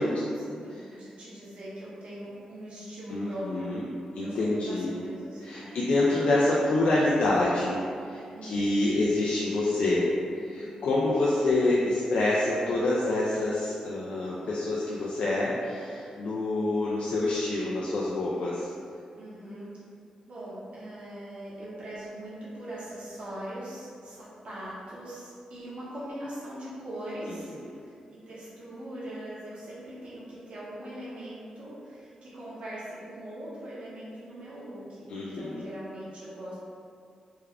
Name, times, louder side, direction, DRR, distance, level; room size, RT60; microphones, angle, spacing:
voice 1, 0.0-3.7 4.2-5.8 8.3-8.7 10.5-10.8 19.2-19.7 20.3-28.0 28.3-36.6, right 1 dB, 60° right, -9 dB, 1.1 m, -41 dB
voice 2, 3.1-3.8 4.2-5.0 5.4-7.8 8.1-10.1 10.3-18.7 35.1-35.6, left 2 dB, 70° left, -6 dB, 0.4 m, -27 dB
3.5 x 2.3 x 3.4 m, 2.4 s
cardioid pair, 95°, 2 cm